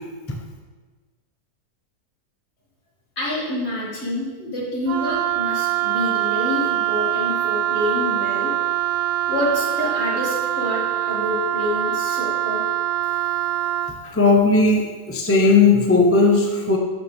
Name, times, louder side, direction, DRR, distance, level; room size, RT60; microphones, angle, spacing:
voice 1, 3.2-8.5 9.3-12.6, left 1 dB, 40° left, -6 dB, 2.6 m, -27 dB
Wind instrument woodwind instrument, 4.9-14.0, right 12 dB, 80° right, 1.1 m, -23 dB
voice 2, 14.1-16.8, left 3 dB, 15° left, 0 dB, 0.6 m, -16 dB
12.5 x 6.6 x 3.5 m, 1.4 s
omnidirectional pair, 1.7 m